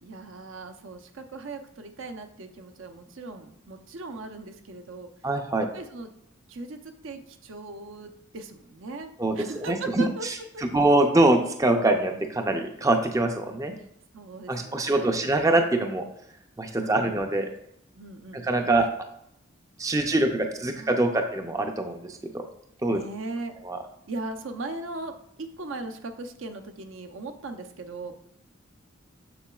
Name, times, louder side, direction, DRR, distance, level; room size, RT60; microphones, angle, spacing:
voice 1, 0.0-5.1 5.6-6.1 6.5-9.1 9.4-10.3 10.5-10.8 14.1-15.3 16.8-17.2 17.9-18.7 19.8-21.2 22.9-23.5 24.1-28.1, right 3 dB, 75° right, 6 dB, 0.6 m, -39 dB
voice 2, 5.2-5.7 9.2-13.7 14.5-16.0 16.6-17.5 18.4-18.9 19.8-22.5 22.8-23.0 23.6-23.8, right 2 dB, 15° right, 5 dB, 0.4 m, -24 dB
7.0 x 6.6 x 2.3 m, 0.75 s
head